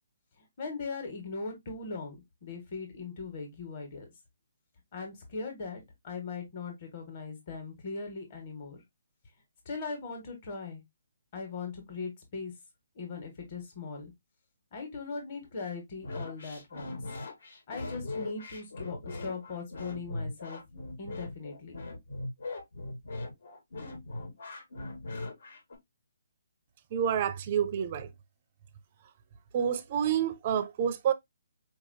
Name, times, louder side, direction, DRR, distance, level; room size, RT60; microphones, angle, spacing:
voice 1, 0.4-4.1 4.9-8.8 9.6-10.8 11.3-12.5 12.9-14.1 14.7-17.0 17.7-20.6 21.0-21.8, left 4 dB, 30° left, 1.4 m, -39 dB
sound 1, 16.0-25.8, left 2 dB, 65° left, 1.6 m, -39 dB
voice 2, 26.9-28.1 29.5-31.1, right 8 dB, 30° right, 0.4 m, -28 dB
4.6 x 2.8 x 2.6 m
hypercardioid pair, 170°, 0 cm